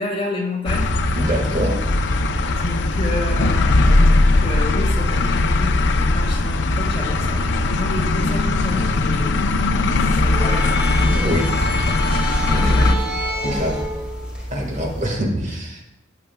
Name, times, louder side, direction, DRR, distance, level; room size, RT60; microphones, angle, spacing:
voice 1, 0.0-1.0 2.6-9.5 10.0-10.7 11.7-12.2 12.6-13.1, left 2 dB, 30° left, 0 dB, 1.9 m, -30 dB
sound 1, 0.7-13.0, left 2 dB, 60° left, 0.7 m, -19 dB
voice 2, 1.2-1.8 11.0-11.5 12.5-12.9 13.4-13.8 14.5-15.8, equal, 40° right, 1 dB, 1.7 m, -24 dB
sound 2, 10.0-15.1, equal, 5° right, 2.2 m, -28 dB
14.5 x 9.8 x 2.3 m, 0.90 s
head